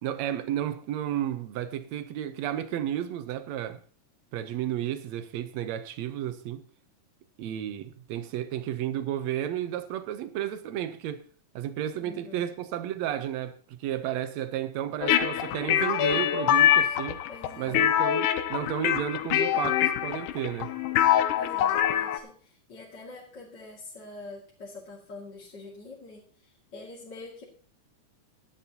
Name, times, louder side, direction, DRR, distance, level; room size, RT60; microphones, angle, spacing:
voice 1, 0.0-3.8 4.3-6.6 7.4-11.2 11.6-17.2 17.6-20.7, right 11 dB, 70° right, 2.0 m, -32 dB
voice 2, 12.0-12.4 17.3-17.9 21.3-27.5, left 2 dB, 35° left, 2.7 m, -45 dB
sound 1, 15.0-22.2, left 11 dB, 80° left, 2.3 m, -24 dB
17.0 x 11.5 x 2.9 m
omnidirectional pair, 3.7 m